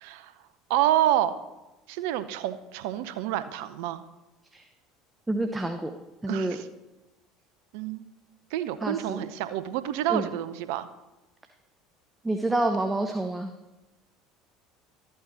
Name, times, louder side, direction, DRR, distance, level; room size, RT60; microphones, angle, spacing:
voice 1, 0.0-0.3 0.7-1.3 1.9-4.0 6.3-6.7 7.7-8.1 8.5-10.9, right 12 dB, 65° right, 13 dB, 0.6 m, -28 dB
voice 2, 5.3-5.9 6.2-6.6 8.8-9.2 10.1-10.3 12.2-13.5, right 2 dB, 10° right, 5 dB, 0.8 m, -28 dB
12.5 x 8.7 x 4.1 m, 1.0 s
hypercardioid pair, 65°, 0 cm